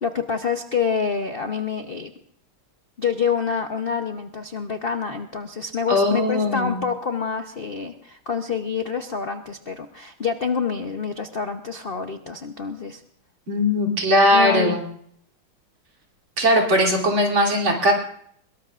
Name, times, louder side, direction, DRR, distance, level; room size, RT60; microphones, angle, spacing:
voice 1, 0.0-2.1 3.0-13.0 14.3-14.8, left 6 dB, 70° left, 6 dB, 0.5 m, -27 dB
voice 2, 5.9-6.8 13.5-14.8 16.4-17.9, left 1 dB, 65° right, -1 dB, 4.0 m, -19 dB
23.5 x 22.0 x 2.5 m, 0.68 s
omnidirectional pair, 2.3 m